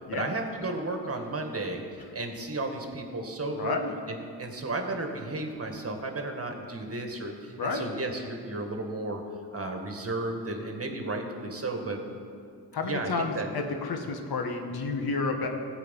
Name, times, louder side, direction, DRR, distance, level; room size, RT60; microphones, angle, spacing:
voice 1, 0.1-1.8 2.1-3.8 4.1-9.2 9.5-12.0 12.8-13.5, right 2 dB, 35° right, 3 dB, 2.0 m, -33 dB
voice 2, 3.5-3.9 7.6-7.8 12.7-15.5, left 4 dB, 65° left, 4 dB, 1.6 m, -30 dB
14.5 x 5.0 x 8.3 m, 2.3 s
supercardioid pair, 60°, 40 cm